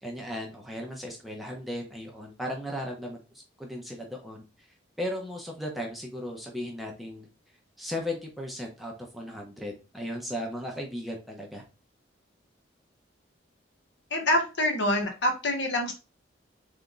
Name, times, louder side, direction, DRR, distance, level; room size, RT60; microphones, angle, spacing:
voice 1, 0.0-3.2 3.6-4.7 5.0-7.3 7.8-11.6, equal, ahead, -1 dB, 0.8 m, -36 dB
voice 2, 14.1-15.9, left 1 dB, 65° left, 3 dB, 1.3 m, -26 dB
3.5 x 3.5 x 3.8 m, 0.31 s
head